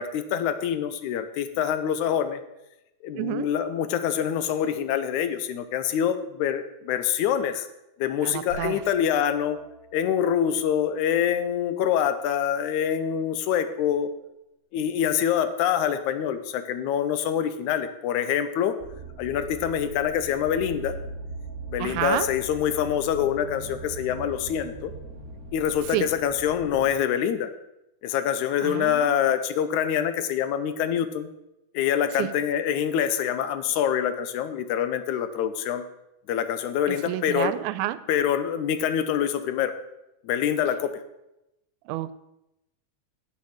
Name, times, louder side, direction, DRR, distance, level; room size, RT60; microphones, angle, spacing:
voice 1, 0.0-2.4 3.0-7.7 8.0-9.6 9.9-14.1 14.7-18.8 19.2-21.0 21.7-24.9 25.5-27.5 28.0-31.3 31.7-35.9 36.3-37.5 38.1-39.7 40.2-41.0, left 9 dB, 85° left, 11 dB, 2.1 m, -25 dB
voice 2, 3.1-3.5 8.2-8.8 21.8-22.3 25.9-26.1 28.6-29.1 32.2-32.3 36.8-38.1 41.9-42.1, right 15 dB, 90° right, 15 dB, 2.1 m, -29 dB
sound 1, 8.5-12.3, left 1 dB, 50° left, 1.6 m, -47 dB
sound 2, 18.8-26.9, right 2 dB, 60° right, 0.9 m, -40 dB
9.5 x 7.1 x 6.4 m, 0.90 s
omnidirectional pair, 3.4 m